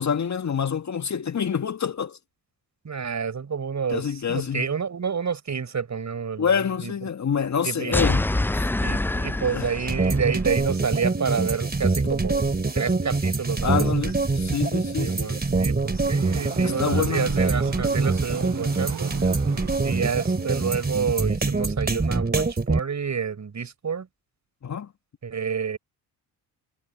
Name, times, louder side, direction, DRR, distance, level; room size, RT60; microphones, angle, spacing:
voice 1, 0.0-2.2 3.9-4.7 6.4-8.3 8.5-8.7 9.5-9.7 13.6-15.3 16.6-17.3 24.6-24.9, left 7 dB, 35° left, 2.2 m, -27 dB
voice 2, 2.8-6.5 6.8-6.9 7.6-8.0 8.8-14.0 15.0-19.2 19.8-24.1 25.2-25.8, right 6 dB, 35° right, 5.9 m, -29 dB
sound 1, 7.9-10.5, left 2 dB, 5° left, 0.5 m, -25 dB
sound 2, 9.9-22.8, right 3 dB, 20° right, 3.7 m, -24 dB
Conversation / Crowd, 15.8-21.1, right 13 dB, 55° right, 3.9 m, -39 dB
figure-of-eight pair, 45°, 49 cm